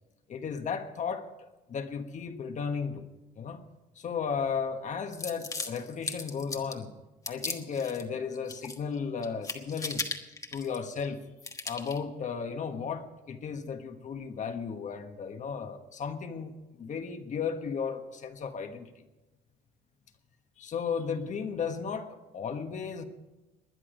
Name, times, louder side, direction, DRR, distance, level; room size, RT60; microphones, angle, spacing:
voice 1, 0.3-3.1 3.4-3.6 4.0-6.9 7.3-10.1 10.5-11.2 11.6-18.9 20.6-23.0, left 6 dB, 45° left, 7 dB, 1.4 m, -35 dB
sound 1, 5.1-6.8 7.3-8.0 8.3-9.0 9.2-11.1 11.4-12.0, left 3 dB, 20° left, 1.3 m, -37 dB
20.5 x 10.0 x 5.2 m, 1.1 s
cardioid pair, 110°, 17 cm